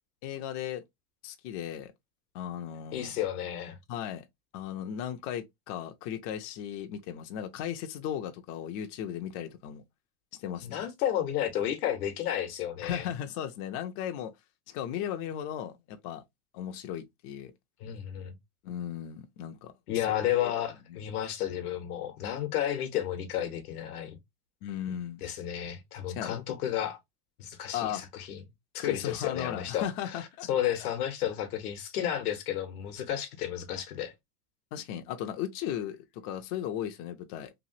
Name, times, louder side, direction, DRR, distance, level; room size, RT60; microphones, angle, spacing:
voice 1, 0.2-0.8 1.2-1.9 2.3-3.2 3.9-4.2 4.5-9.8 10.4-10.8 12.8-14.3 14.7-16.2 16.5-17.5 18.6-20.0 20.4-20.5 24.6-25.2 26.1-26.4 27.7-28.0 28.8-30.5 34.7-37.5, left 10 dB, 45° left, 0.6 m, -36 dB
voice 2, 2.9-3.8 10.6-13.1 17.8-18.4 19.9-24.2 25.2-27.0 27.4-28.4 28.7-34.1, left 11 dB, 85° left, 1.0 m, -32 dB
3.1 x 2.4 x 2.7 m
supercardioid pair, 125°, 44 cm